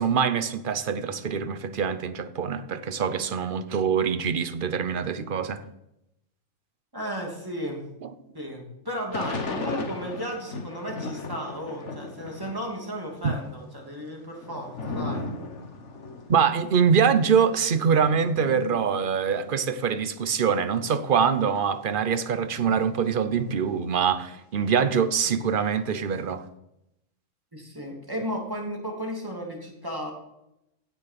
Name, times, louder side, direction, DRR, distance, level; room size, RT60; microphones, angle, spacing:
voice 1, 0.0-5.6 13.2-13.4 16.3-26.4, right 7 dB, 45° right, 0.9 m, -24 dB
voice 2, 6.9-7.9 8.3-15.3 27.5-30.1, equal, 15° right, 2.8 m, -34 dB
Thunder / Rain, 9.1-12.8 13.1-20.1 20.7-20.8 21.0-24.2 24.6-26.3, left 3 dB, 65° left, 1.6 m, -38 dB
16.0 x 6.7 x 5.9 m
omnidirectional pair, 1.3 m